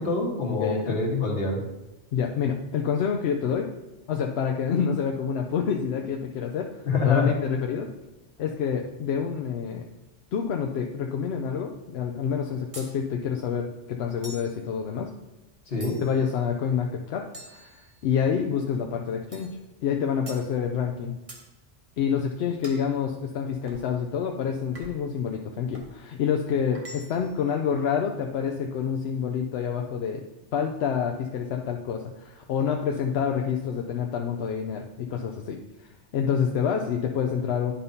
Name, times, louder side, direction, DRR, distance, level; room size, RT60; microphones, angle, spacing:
voice 1, 0.0-1.6 6.8-7.3 15.7-16.0, left 4 dB, 50° left, -2 dB, 1.6 m, -25 dB
voice 2, 0.6-1.0 2.1-3.7 4.1-6.7 7.0-7.9 8.4-9.8 10.3-15.1 16.0-19.5 19.8-21.2 22.0-30.2 30.5-37.7, left 7 dB, 70° left, 2 dB, 0.8 m, -28 dB
sound 1, 12.7-13.0 14.2-14.6 15.8-16.3 17.3-18.2 19.3-19.6 20.3-20.5 21.3-21.5 22.6-22.9 23.7-23.9 24.7-25.1 25.7-26.0 26.7-27.3, right 1 dB, 30° right, 1.0 m, -45 dB
10.0 x 5.4 x 2.7 m, 1.0 s
omnidirectional pair, 1.2 m